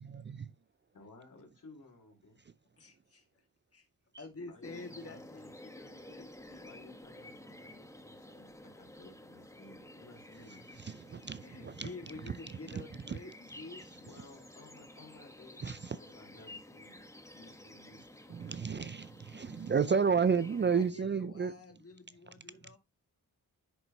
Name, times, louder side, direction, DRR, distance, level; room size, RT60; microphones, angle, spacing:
voice 1, 0.9-2.4 4.5-5.5 6.6-10.8 14.0-18.0, left 2 dB, 65° left, 3.0 m, -57 dB
voice 2, 2.8-3.2 3.7-3.9 4.2-6.7 11.4-13.8 20.2-20.3 20.7-22.8, left 3 dB, 40° left, 1.8 m, -49 dB
sound 1, 4.6-20.9, left 1 dB, 10° left, 1.0 m, -52 dB
voice 3, 10.8-11.9 12.7-13.2 15.6-16.0 18.3-21.5, right 6 dB, 35° right, 0.4 m, -31 dB
10.5 x 3.9 x 2.8 m
cardioid pair, 70°, 34 cm